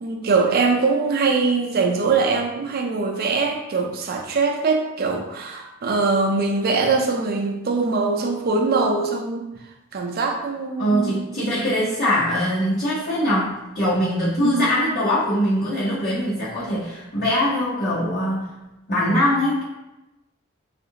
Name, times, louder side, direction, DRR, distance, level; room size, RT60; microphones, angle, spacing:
voice 1, 0.0-9.5 9.9-11.7 14.4-14.7, right 4 dB, 45° right, 2 dB, 0.4 m, -22 dB
voice 2, 10.8-18.5 18.9-19.6, equal, 45° left, -12 dB, 1.0 m, -22 dB
3.5 x 2.4 x 2.8 m, 0.97 s
head